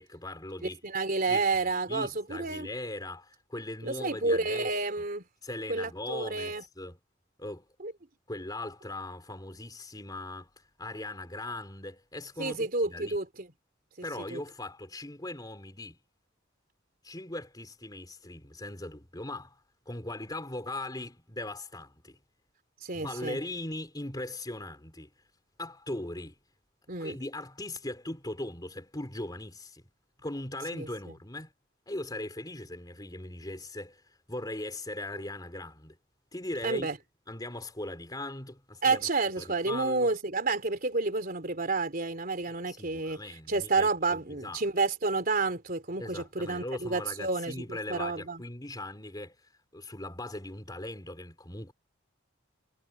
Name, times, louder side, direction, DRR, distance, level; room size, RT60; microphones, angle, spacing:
voice 1, 0.0-0.8 1.3-1.5 1.9-4.7 5.4-7.0 7.4-7.7 8.3-13.2 14.0-16.0 17.0-19.6 19.9-22.2 22.9-25.1 25.6-26.4 27.0-29.9 30.2-31.5 31.9-36.0 36.3-36.9 37.3-39.1 39.4-40.1 42.5-44.6 46.0-51.7, left 1 dB, 20° left, 3.8 m, -39 dB
voice 2, 0.6-2.7 3.8-5.2 5.7-6.6 7.8-7.9 12.4-13.5 14.3-14.4 22.8-23.4 26.9-27.2 30.7-30.9 36.6-37.0 38.8-43.2 43.5-48.4, right 3 dB, 45° right, 3.7 m, -30 dB
head